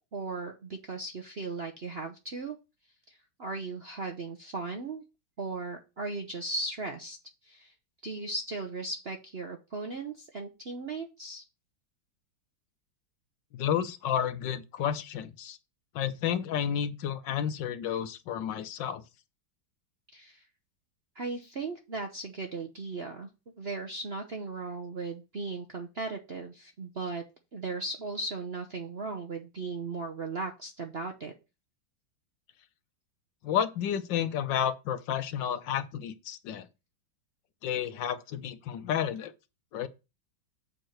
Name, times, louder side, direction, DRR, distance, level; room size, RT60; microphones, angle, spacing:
voice 1, 0.1-2.6 3.1-5.0 5.4-7.2 7.5-7.7 8.0-11.4 20.1-20.4 21.2-23.3 23.6-27.2 27.5-31.3, right 3 dB, 45° right, 0.8 m, -37 dB
voice 2, 13.5-15.6 15.9-19.0 33.4-36.7 37.6-39.3 39.7-39.9, left 9 dB, 70° left, 1.4 m, -31 dB
7.5 x 4.5 x 6.5 m
omnidirectional pair, 2.1 m